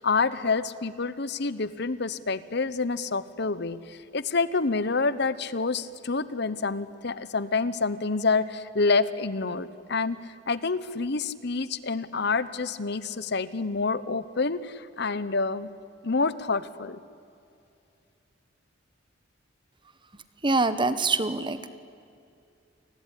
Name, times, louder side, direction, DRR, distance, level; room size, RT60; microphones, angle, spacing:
voice 1, 0.0-15.7 16.0-17.0, left 4 dB, 60° left, 16 dB, 1.0 m, -28 dB
voice 2, 20.4-21.7, right 3 dB, 25° right, 12 dB, 1.3 m, -25 dB
29.0 x 20.5 x 10.0 m, 2.5 s
head